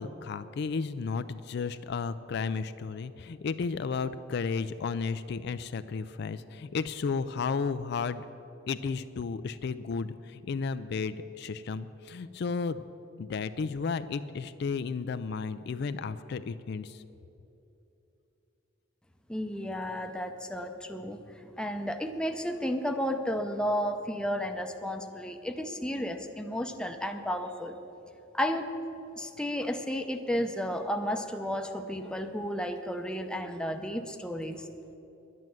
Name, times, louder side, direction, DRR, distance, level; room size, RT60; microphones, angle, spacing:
voice 1, 0.0-8.3 8.7-12.8 13.2-17.0, left 5 dB, 60° left, 12 dB, 0.4 m, -33 dB
voice 2, 19.3-27.8 28.3-28.7 29.2-34.7, equal, 5° left, 6 dB, 0.6 m, -33 dB
11.0 x 9.3 x 7.6 m, 2.9 s
head